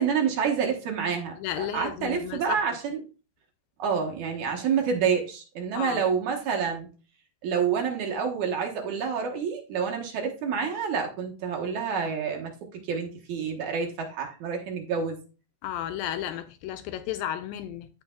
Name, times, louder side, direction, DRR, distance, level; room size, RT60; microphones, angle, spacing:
voice 1, 0.0-3.0 3.8-6.9 7.4-15.2, right 6 dB, 60° right, 2.2 m, -28 dB
voice 2, 1.4-2.6 5.7-6.0 15.6-17.9, left 11 dB, 80° left, 2.1 m, -33 dB
14.0 x 4.8 x 2.3 m
omnidirectional pair, 4.4 m